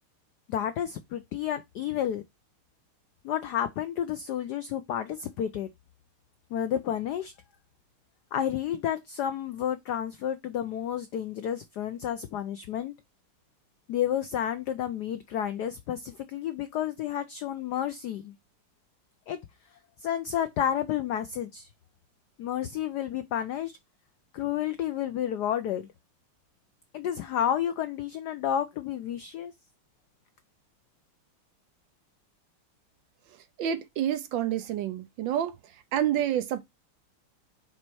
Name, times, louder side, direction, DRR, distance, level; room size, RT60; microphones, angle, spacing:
voice 1, 0.5-2.2 3.2-5.7 6.5-7.3 8.3-12.9 13.9-18.3 19.3-19.4 20.0-21.7 22.4-23.8 24.3-25.9 26.9-29.5, left 10 dB, 85° left, 0.9 m, -31 dB
voice 2, 33.6-35.5 35.9-36.6, right 10 dB, 70° right, 1.2 m, -28 dB
5.4 x 4.2 x 4.6 m
omnidirectional pair, 2.4 m